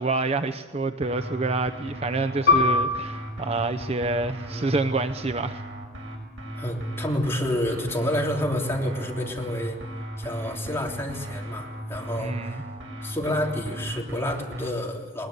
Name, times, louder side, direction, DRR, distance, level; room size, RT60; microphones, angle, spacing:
voice 1, 0.0-5.6 12.2-12.6, right 3 dB, 30° right, 9 dB, 0.7 m, -27 dB
sound 1, 1.0-14.7, right 1 dB, 85° right, 5.9 m, -37 dB
Piano, 2.5-7.5 7.8-8.0 8.8-9.1, left 3 dB, 55° left, 6.1 m, -28 dB
voice 2, 4.4-4.7 6.6-9.8 10.2-12.6 13.0-15.3, left 1 dB, 15° left, -1 dB, 3.4 m, -29 dB
20.5 x 20.5 x 8.1 m, 1.3 s
head